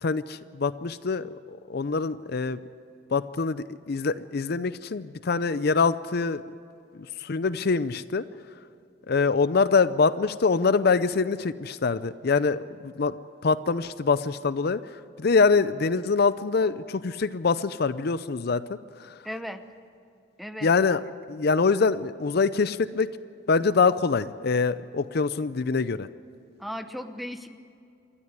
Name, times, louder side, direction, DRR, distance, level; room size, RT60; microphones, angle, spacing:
voice 1, 0.0-2.6 3.1-6.4 7.2-8.3 9.1-19.1 20.6-21.0 21.3-23.1 23.5-26.1, left 4 dB, 55° left, 14 dB, 0.5 m, -24 dB
voice 2, 19.2-19.6 20.4-20.7 26.6-27.6, equal, ahead, 9 dB, 0.9 m, -36 dB
28.0 x 13.0 x 9.7 m, 2.5 s
head